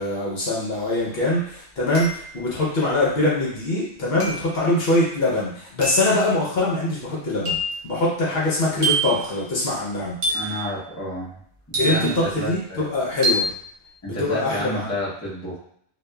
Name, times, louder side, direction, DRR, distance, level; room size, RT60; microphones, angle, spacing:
voice 1, 0.0-10.4 11.8-13.5 14.1-14.9, left 2 dB, 60° left, -5 dB, 0.9 m, -23 dB
sound 1, 0.8-0.9 1.9-2.5 4.2-4.5 5.8-6.1 7.4-7.8 8.8-9.2 10.2-10.6 11.7-12.3 13.2-13.6, right 1 dB, 40° right, 0.5 m, -25 dB
voice 2, 10.3-11.3 11.7-12.9 14.0-15.6, equal, 15° left, -7 dB, 0.6 m, -30 dB
2.8 x 2.4 x 2.2 m, 0.66 s
omnidirectional pair, 1.2 m